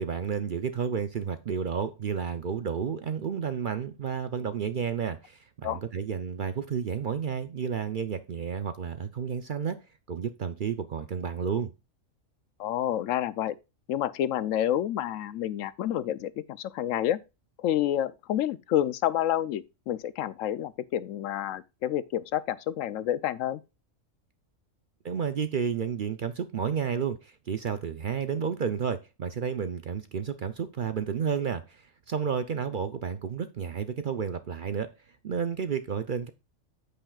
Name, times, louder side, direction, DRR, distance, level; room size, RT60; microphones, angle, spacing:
voice 1, 0.0-9.8 10.1-11.7 25.0-34.9 35.2-36.3, right 7 dB, 55° right, 0.6 m, -31 dB
voice 2, 12.6-13.6 13.9-17.2 17.6-23.6, left 11 dB, 80° left, 1.0 m, -29 dB
14.5 x 5.3 x 2.3 m
omnidirectional pair, 1.4 m